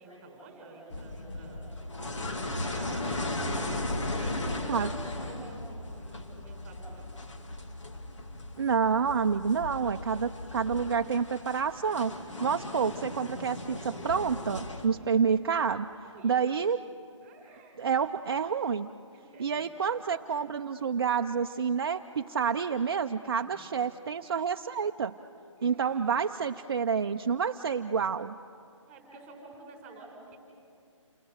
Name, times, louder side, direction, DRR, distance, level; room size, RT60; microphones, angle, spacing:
voice 1, 0.0-1.8 2.6-3.0 3.5-7.1 15.0-15.2 16.0-16.4 17.2-18.0 19.1-19.7 23.2-23.8 25.6-26.3 28.9-30.4, right 3 dB, 10° right, 1 dB, 4.6 m, -50 dB
sound 1, 0.9-14.9, left 2 dB, 65° left, 2.8 m, -37 dB
voice 2, 8.6-12.1 12.4-15.9 16.2-16.8 17.8-18.9 19.4-25.1 25.6-28.3, right 6 dB, 50° right, 6 dB, 0.6 m, -28 dB
28.5 x 26.0 x 6.5 m, 2.5 s
hypercardioid pair, 165°, 17 cm